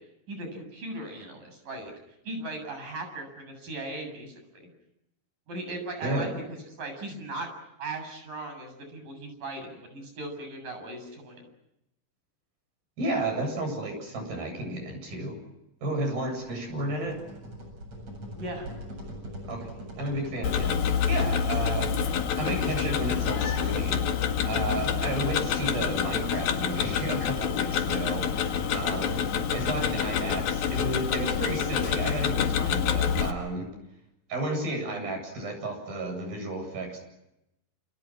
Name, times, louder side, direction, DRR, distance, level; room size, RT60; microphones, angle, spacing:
voice 1, 0.3-1.9 2.3-4.7 5.5-6.4 6.8-7.5 7.8-11.5 18.3-18.7, right 2 dB, 65° right, 6 dB, 9.3 m, -38 dB
voice 2, 6.0-6.3 13.0-15.4 15.8-17.2 19.5-21.9 22.4-24.1 24.4-29.3 29.5-33.7 34.3-37.0, right 2 dB, 85° right, 5 dB, 10.0 m, -32 dB
sound 1, 16.3-21.2, equal, 45° right, 9.1 m, -43 dB
Tick-tock, 20.4-33.3, left 7 dB, 80° left, 3.8 m, -27 dB
29.5 x 29.0 x 6.1 m, 0.87 s
omnidirectional pair, 4.1 m